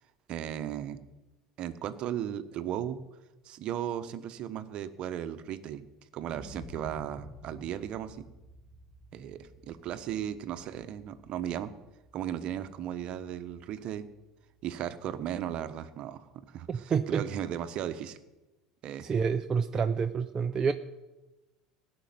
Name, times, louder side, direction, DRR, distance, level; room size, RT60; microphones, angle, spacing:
voice 1, 0.3-1.0 1.6-3.0 3.4-5.8 6.1-8.2 9.1-11.7 12.1-14.1 14.6-18.2 18.8-19.1, right 10 dB, 50° right, 11 dB, 1.1 m, -36 dB
sound 1, 6.3-14.2 14.6-14.7, equal, 15° left, 2.1 m, -52 dB
voice 2, 16.7-17.2 19.0-20.7, right 6 dB, 30° right, 7 dB, 0.7 m, -28 dB
16.5 x 6.4 x 9.6 m, 1.1 s
hypercardioid pair, 75°, 2 cm